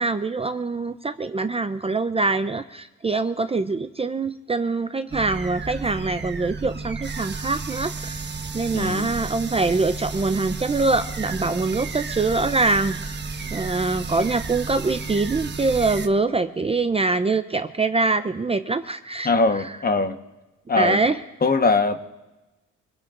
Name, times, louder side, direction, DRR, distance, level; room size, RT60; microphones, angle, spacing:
voice 1, 0.0-8.2 8.5-13.2 13.5-19.3 20.8-21.2, right 3 dB, 20° right, 10 dB, 0.6 m, -24 dB
sound 1, 5.1-16.1, right 4 dB, 35° right, 1.3 m, -32 dB
voice 2, 8.7-9.1 19.2-20.2 20.7-21.0 21.4-22.0, left 3 dB, 30° left, 7 dB, 1.2 m, -21 dB
25.0 x 17.5 x 2.5 m, 1.1 s
cardioid pair, 90°, 30 cm